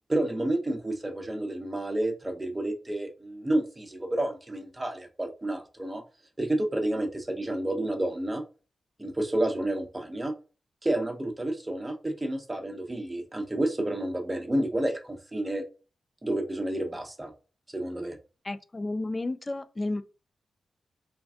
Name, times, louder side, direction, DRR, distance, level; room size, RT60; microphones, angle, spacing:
voice 1, 0.1-6.0 6.4-8.4 9.0-10.3 10.8-15.6 16.2-17.3 17.7-18.2, right 1 dB, 20° right, 0.8 m, -30 dB
voice 2, 18.4-20.0, left 2 dB, 35° left, 0.3 m, -32 dB
3.4 x 2.2 x 2.3 m
supercardioid pair, 45°, 0 cm